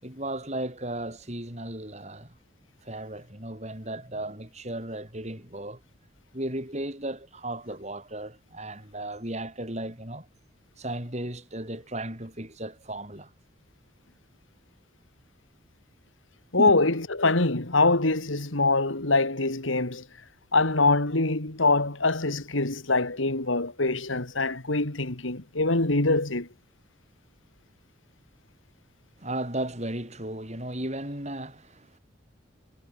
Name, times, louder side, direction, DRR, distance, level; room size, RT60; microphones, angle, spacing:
voice 1, 0.0-2.3 2.8-5.8 6.3-10.3 10.8-13.3 16.5-16.8 29.2-32.0, right 1 dB, 35° right, 7.5 m, -35 dB
voice 2, 16.5-20.0 20.5-26.5, left 3 dB, 85° left, 2.9 m, -24 dB
head